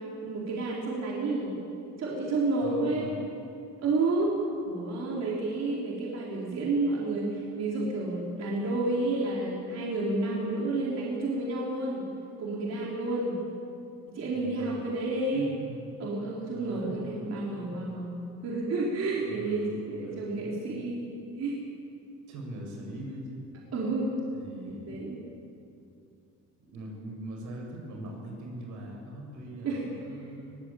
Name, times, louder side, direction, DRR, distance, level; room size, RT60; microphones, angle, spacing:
voice 1, 0.0-1.6 2.0-3.2 3.8-4.3 4.6-12.0 12.4-13.4 14.1-15.5 16.0-18.2 18.4-21.0 21.4-21.6 23.7-24.1 24.9-25.2 29.6-29.8, right 2 dB, 60° right, -4 dB, 4.2 m, -30 dB
voice 2, 2.6-3.2 14.3-14.9 15.3-15.9 16.5-17.8 19.2-20.5 22.3-23.4 24.3-25.0 26.6-30.6, right 1 dB, 85° right, 0 dB, 6.8 m, -42 dB
22.5 x 18.5 x 8.7 m, 2.6 s
cardioid pair, 135°, 30 cm